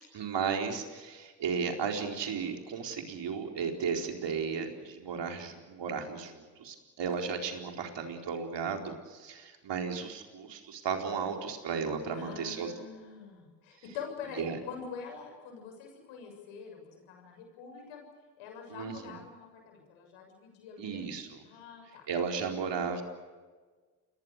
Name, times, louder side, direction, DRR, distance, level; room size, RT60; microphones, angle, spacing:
voice 1, 0.1-12.7 14.4-14.6 18.7-19.2 20.8-21.3 22.1-23.0, right 6 dB, 60° right, 3 dB, 4.4 m, -34 dB
voice 2, 12.1-18.0 18.4-21.0 21.4-22.1, left 6 dB, 75° left, 4 dB, 7.1 m, -45 dB
29.0 x 21.5 x 6.7 m, 1.4 s
hypercardioid pair, 45°, 48 cm